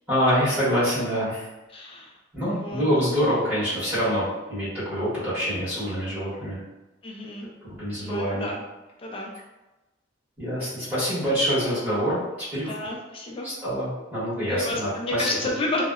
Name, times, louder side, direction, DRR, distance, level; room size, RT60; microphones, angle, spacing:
voice 1, 0.1-1.5 2.3-6.6 7.7-8.5 10.4-12.2 12.5-12.7 13.4-15.3, equal, 10° right, -13 dB, 1.2 m, -25 dB
voice 2, 1.7-2.1 2.5-2.8 7.0-7.5 8.0-8.6 9.0-9.3 11.5-11.7 12.7-13.5 14.5-15.9, left 2 dB, 30° left, -1 dB, 0.3 m, -31 dB
2.7 x 2.0 x 2.3 m, 1.1 s
head